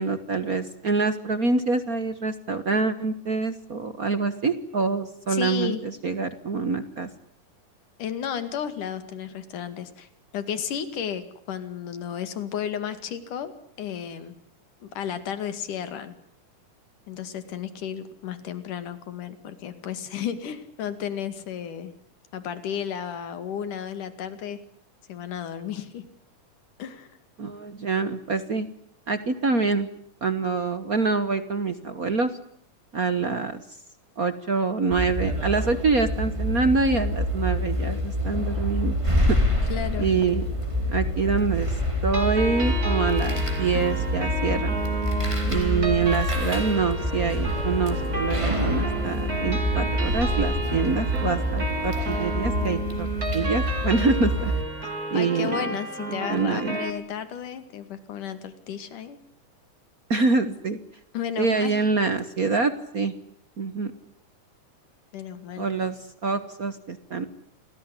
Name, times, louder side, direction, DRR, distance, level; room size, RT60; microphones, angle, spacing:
voice 1, 0.0-7.1 27.4-28.7 29.1-29.9 30.2-32.3 32.9-33.6 34.2-38.9 39.2-39.4 40.0-40.4 40.9-41.8 42.0-44.8 45.5-53.1 53.3-54.5 55.1-55.8 56.3-56.8 60.1-60.8 61.4-63.1 63.6-63.9 65.6-67.2, right 4 dB, 50° right, 12 dB, 1.0 m, -25 dB
voice 2, 5.3-5.8 8.0-10.1 10.3-13.5 13.8-14.3 14.8-16.2 17.1-21.9 22.3-24.6 25.1-26.1 26.8-27.1 39.7-40.1 54.8-59.2 61.1-61.8 65.1-65.7, left 8 dB, 80° left, 11 dB, 3.7 m, -33 dB
sound 1, 34.9-54.6, equal, 10° right, 3.9 m, -27 dB
sound 2, 42.1-56.9, right 2 dB, 25° right, 4.2 m, -32 dB
28.5 x 20.0 x 9.9 m, 0.64 s
omnidirectional pair, 3.6 m